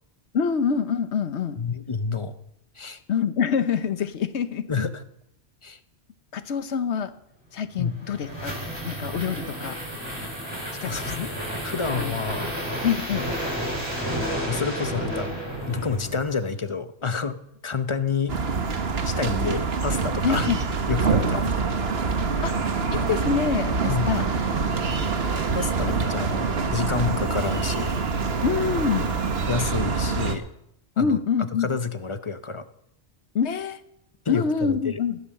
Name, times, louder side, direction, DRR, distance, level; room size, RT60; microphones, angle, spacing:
voice 1, 0.3-1.6 3.1-4.9 6.3-7.1 7.5-8.5 8.8-9.8 10.8-11.3 11.9-12.2 12.8-13.3 20.2-20.6 22.4-22.5 22.9-24.3 28.4-29.1 31.0-31.7 33.3-33.8 34.3-35.2, left 6 dB, 90° left, 12 dB, 1.2 m, -26 dB
voice 2, 1.6-2.4 2.8-3.0 4.7-5.0 5.6-5.8 7.8-8.0 10.8-12.5 14.5-15.3 15.6-18.4 19.0-20.5 20.9-21.5 23.9-24.1 25.5-27.9 29.5-30.4 31.0-32.7 34.2-35.0, left 5 dB, 30° left, 11 dB, 0.7 m, -29 dB
sound 1, 7.7-16.6, equal, 25° right, 4.8 m, -31 dB
sound 2, 18.3-30.3, right 4 dB, 65° right, 1.5 m, -25 dB
16.0 x 11.0 x 6.6 m, 0.79 s
omnidirectional pair, 1.1 m